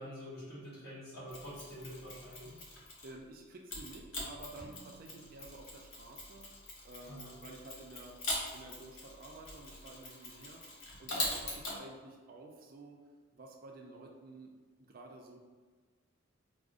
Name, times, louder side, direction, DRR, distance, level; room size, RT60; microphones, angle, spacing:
voice 1, 0.0-2.6 7.1-7.3, equal, 50° left, -7 dB, 1.3 m, -46 dB
Mechanisms, 1.3-3.2 3.7-11.8, left 2 dB, 75° left, 0.9 m, -42 dB
voice 2, 2.7-8.2 8.5-13.0 13.3-14.5 14.8-15.4, right 2 dB, 45° right, 1 dB, 0.4 m, -51 dB
sound 1, 4.6-6.5, right 2 dB, ahead, 1.2 m, -58 dB
4.7 x 2.0 x 2.5 m, 1.4 s
head